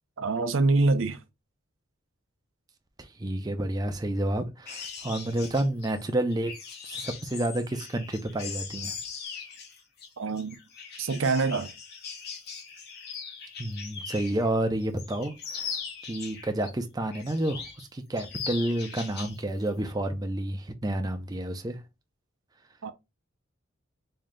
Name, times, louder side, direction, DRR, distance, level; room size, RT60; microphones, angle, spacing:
voice 1, 0.2-1.2 10.2-10.6 11.0-11.7 22.8-22.9, right 3 dB, 70° right, 0.6 m, -25 dB
voice 2, 3.0-6.5 6.9-8.9 13.6-15.8 16.1-17.6 17.9-21.8, right 1 dB, 20° right, 0.4 m, -30 dB
sound 1, 4.6-14.5 14.8-16.7 17.1-17.8 18.1-19.4 19.7-19.9, left 6 dB, 50° left, 0.9 m, -40 dB
3.2 x 2.7 x 3.7 m
head